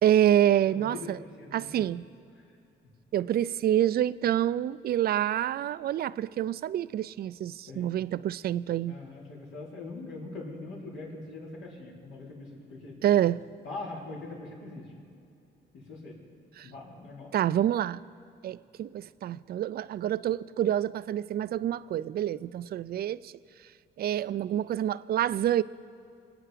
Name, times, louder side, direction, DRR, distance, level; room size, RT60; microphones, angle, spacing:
voice 1, 0.0-1.2 1.5-2.0 3.1-9.0 13.0-13.4 16.6-16.7 17.3-18.0 18.4-23.3 24.0-25.6, right 11 dB, 50° right, 18 dB, 0.4 m, -27 dB
voice 2, 0.6-2.0 2.4-2.5 7.7-8.0 8.9-13.0 13.6-14.9 15.7-16.2 16.6-17.3, left 3 dB, 80° left, -4 dB, 4.0 m, -42 dB
24.0 x 8.6 x 5.1 m, 2.5 s
cardioid pair, 90°, 20 cm